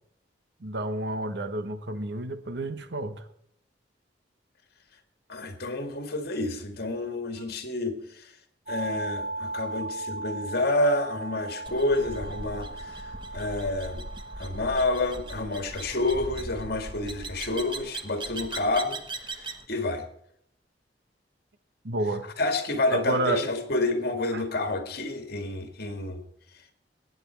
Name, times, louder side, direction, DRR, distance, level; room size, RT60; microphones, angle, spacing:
voice 1, 0.6-3.3 21.8-22.3 22.9-23.4 24.3-24.4, right 2 dB, 65° right, 1.1 m, -30 dB
voice 2, 5.3-8.3 8.7-14.1 14.4-20.0 22.4-26.2, left 2 dB, 60° left, 2.1 m, -29 dB
sound 1, 8.7-18.4, right 2 dB, 45° right, 3.2 m, -39 dB
sound 2, 11.7-19.7, right 2 dB, 25° right, 1.2 m, -39 dB
21.5 x 9.5 x 4.6 m
head